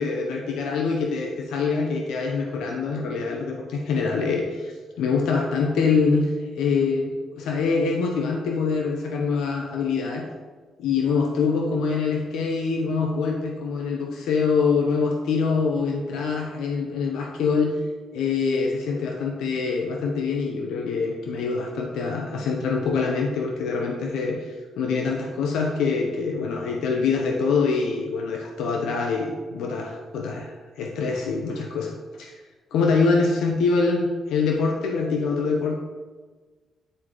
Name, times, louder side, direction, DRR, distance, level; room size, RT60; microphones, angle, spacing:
voice 1, 0.0-10.2 10.8-17.8 18.1-32.4 32.7-35.8, left 4 dB, 85° left, 1 dB, 0.7 m, -25 dB
9.8 x 3.8 x 3.1 m, 1.4 s
cardioid pair, 90°, 0 cm